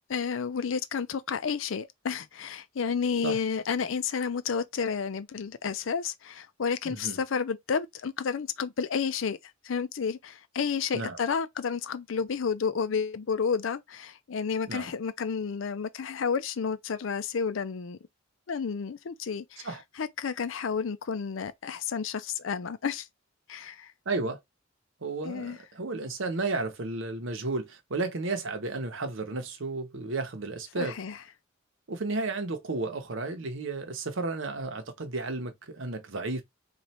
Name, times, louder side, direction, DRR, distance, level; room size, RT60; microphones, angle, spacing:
voice 1, 0.1-9.4 9.6-18.0 18.5-23.1 23.5-23.9 25.2-25.6 30.8-31.2, left 6 dB, 65° left, 0.5 m, -31 dB
voice 2, 6.8-7.2 10.9-11.2 14.7-14.9 19.6-19.8 24.1-24.4 25.0-31.0 31.9-36.4, right 3 dB, 65° right, 0.9 m, -33 dB
3.2 x 2.5 x 4.2 m
head